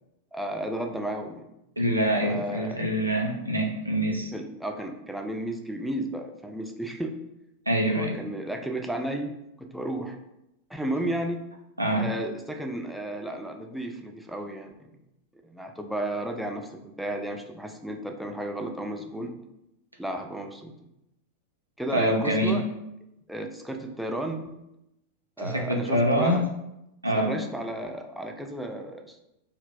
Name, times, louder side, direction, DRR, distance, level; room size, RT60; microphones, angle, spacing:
voice 1, 0.3-1.5 2.2-2.8 4.3-7.2 7.9-10.2 10.7-11.4 12.0-14.9 15.4-19.3 20.0-20.7 21.8-22.6 23.3-24.5 25.4-26.5 27.1-29.2, right 1 dB, ahead, 3 dB, 0.3 m, -33 dB
voice 2, 1.8-4.3 7.7-8.2 11.8-12.1 21.9-22.6 25.4-26.4 27.0-27.4, equal, 85° right, 1 dB, 0.4 m, -25 dB
2.0 x 2.0 x 3.6 m, 0.86 s
figure-of-eight pair, 90°, 0 cm